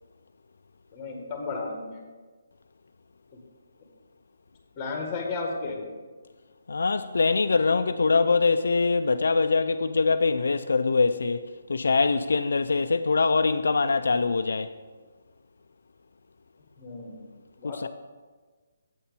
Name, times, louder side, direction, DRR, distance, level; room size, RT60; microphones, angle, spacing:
voice 1, 0.9-2.0 4.8-5.8 16.8-17.2 17.6-17.8, left 3 dB, 20° left, 1.6 m, -33 dB
voice 2, 6.7-14.7 17.6-17.9, left 4 dB, 75° left, 0.4 m, -23 dB
8.3 x 4.4 x 6.8 m
hypercardioid pair, 165°, 0 cm